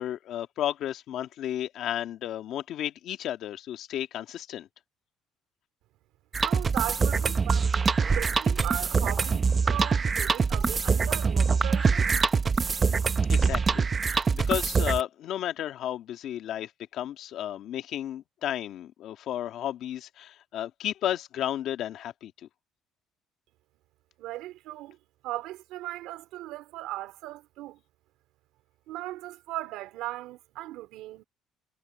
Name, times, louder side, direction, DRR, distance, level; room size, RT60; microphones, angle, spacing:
voice 1, 0.0-4.7 13.3-22.3, left 11 dB, 60° left, 1.7 m, -33 dB
sound 1, 6.3-15.0, right 5 dB, 25° right, 0.7 m, -24 dB
voice 2, 6.4-12.1 24.2-25.0 25.2-27.8 28.9-31.2, right 16 dB, 80° right, 3.5 m, -37 dB
cardioid pair, 140°, 0 cm